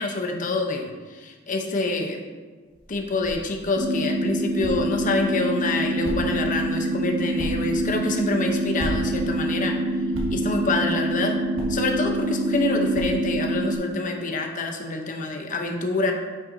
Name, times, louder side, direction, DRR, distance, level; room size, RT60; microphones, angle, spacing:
voice 1, 0.0-2.2 2.9-9.8 10.3-11.4 11.7-16.1, left 2 dB, 40° left, 2 dB, 0.8 m, -26 dB
sound 1, 2.7-13.6, equal, 80° right, 1.5 m, -38 dB
sound 2, 3.8-13.8, right 1 dB, 60° right, 1.1 m, -26 dB
9.3 x 5.6 x 2.7 m, 1.4 s
head